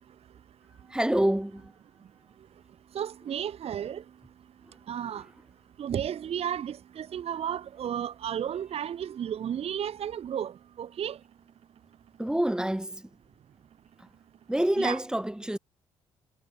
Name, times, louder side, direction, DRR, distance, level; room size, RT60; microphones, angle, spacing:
voice 1, 0.9-1.7 4.7-4.8 5.1-5.2 12.2-13.1 14.5-15.6, right 1 dB, 5° right, 4.6 m, -27 dB
voice 2, 2.9-4.0 4.9-5.2 5.8-11.2 14.8-15.0, right 9 dB, 45° right, 1.6 m, -33 dB
figure-of-eight pair, 45°, 14 cm